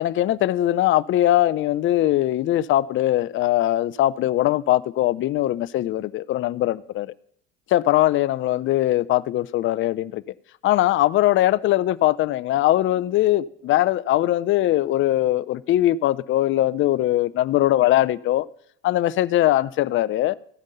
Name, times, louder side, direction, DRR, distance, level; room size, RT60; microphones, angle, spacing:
voice 1, 0.0-7.1 7.7-10.2 10.6-18.5 18.8-20.4, left 14 dB, 40° left, 0.4 m, -21 dB
14.0 x 5.2 x 6.6 m
supercardioid pair, 90°, 33 cm